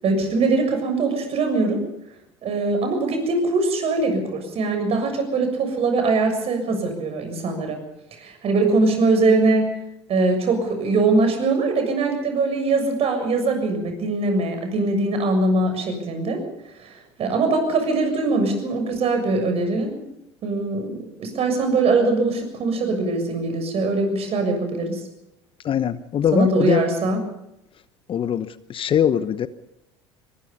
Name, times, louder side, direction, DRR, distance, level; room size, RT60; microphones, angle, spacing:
voice 1, 0.0-1.8 2.4-7.8 8.2-9.8 10.1-16.4 17.2-20.0 20.4-25.0 26.3-27.2, right 3 dB, 45° right, 5 dB, 7.0 m, -22 dB
voice 2, 25.6-26.8 28.1-29.5, left 9 dB, 40° left, 14 dB, 1.0 m, -22 dB
23.0 x 21.0 x 5.5 m, 0.85 s
hypercardioid pair, 70°, 14 cm